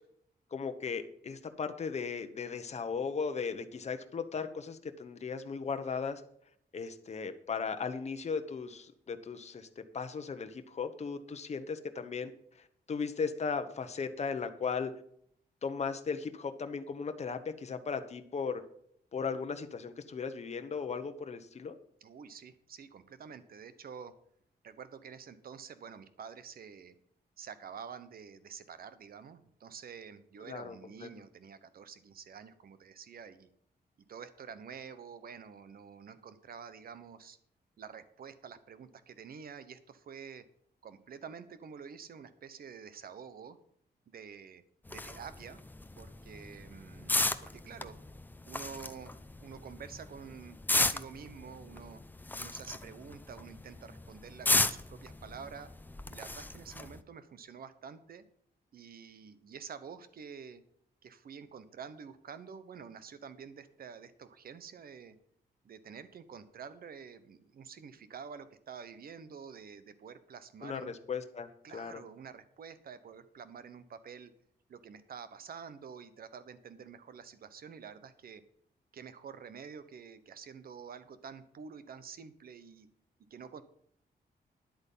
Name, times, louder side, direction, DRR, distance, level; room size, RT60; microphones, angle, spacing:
voice 1, 0.5-6.2 6.7-12.3 12.6-14.9 15.6-18.6 19.1-21.8 30.4-31.1 70.6-72.0, left 5 dB, 40° left, 8 dB, 1.0 m, -37 dB
voice 2, 22.0-24.1 24.6-27.0 27.4-33.5 34.1-37.4 37.8-40.4 40.8-43.6 44.1-44.6 44.9-45.6 46.0-48.0 48.5-49.1 49.4-52.0 52.4-55.7 56.1-58.3 58.7-60.6 61.0-65.2 65.6-70.9 71.6-74.3 74.7-78.4 78.9-82.9 83.3-83.6, right 6 dB, 60° right, 13 dB, 1.0 m, -48 dB
sound 1, 44.9-57.0, left 2 dB, 10° left, 0.6 m, -35 dB
10.5 x 8.2 x 5.5 m, 0.67 s
wide cardioid pair, 130°, 17 cm